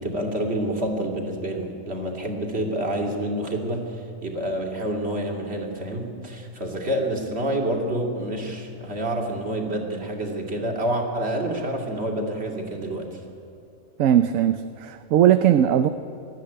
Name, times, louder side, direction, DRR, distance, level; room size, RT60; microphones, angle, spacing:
voice 1, 0.0-13.2, right 1 dB, 50° right, 1 dB, 2.8 m, -28 dB
voice 2, 14.0-15.9, right 10 dB, 75° right, 10 dB, 1.1 m, -19 dB
20.5 x 13.5 x 10.0 m, 2.6 s
omnidirectional pair, 1.4 m